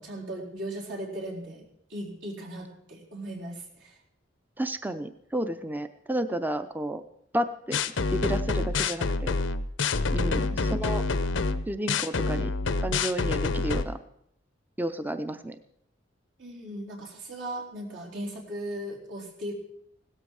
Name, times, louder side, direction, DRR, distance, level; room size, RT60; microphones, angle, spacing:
voice 1, 0.0-1.6 1.9-4.0 10.1-10.7 16.4-19.5, right 1 dB, 70° right, -2 dB, 4.2 m, -38 dB
voice 2, 4.6-7.0 7.3-7.8 8.1-9.3 10.1-11.0 11.7-12.5 12.8-14.0 14.8-15.6, right 1 dB, 10° right, 10 dB, 0.6 m, -31 dB
sound 1, 7.7-13.8, left 3 dB, 90° left, 0.7 m, -27 dB
17.0 x 13.0 x 4.8 m, 0.72 s
head